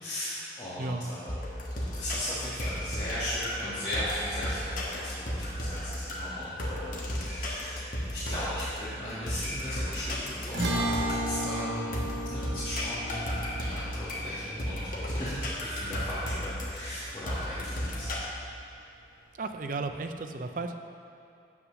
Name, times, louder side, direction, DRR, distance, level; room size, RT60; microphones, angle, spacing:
voice 1, 0.0-1.3 1.9-18.1, equal, 25° left, -13 dB, 1.7 m, -37 dB
voice 2, 0.8-1.1 19.4-20.8, right 3 dB, 50° right, 6 dB, 0.5 m, -34 dB
sound 1, 1.3-18.2, equal, 50° left, 1.3 m, -34 dB
sound 2, 10.5-17.1, right 1 dB, 90° right, 1.2 m, -35 dB
7.8 x 5.9 x 6.2 m, 2.6 s
head